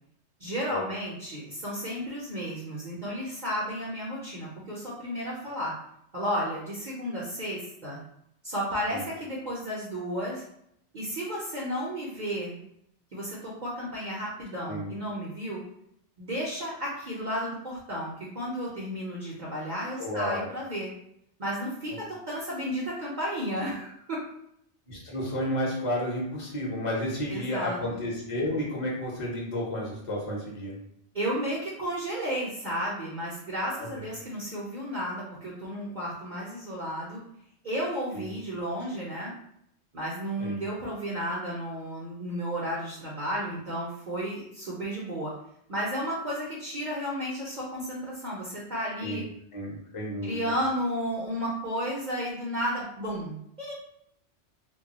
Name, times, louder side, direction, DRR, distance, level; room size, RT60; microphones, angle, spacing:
voice 1, 0.4-5.7 6.1-8.0 8.4-10.4 10.9-12.6 13.1-15.6 16.2-20.9 21.4-24.2 27.3-27.8 31.1-37.2 37.6-39.3 39.9-45.3 45.7-49.2 50.2-53.7, equal, 50° right, -6 dB, 0.7 m, -33 dB
voice 2, 20.0-20.5 21.9-22.0 24.9-30.8 33.8-34.0 38.1-38.3 40.4-40.6 49.0-49.2 49.5-50.5, left 1 dB, 35° left, -3 dB, 0.7 m, -32 dB
2.3 x 2.1 x 3.9 m, 0.73 s
omnidirectional pair, 1.2 m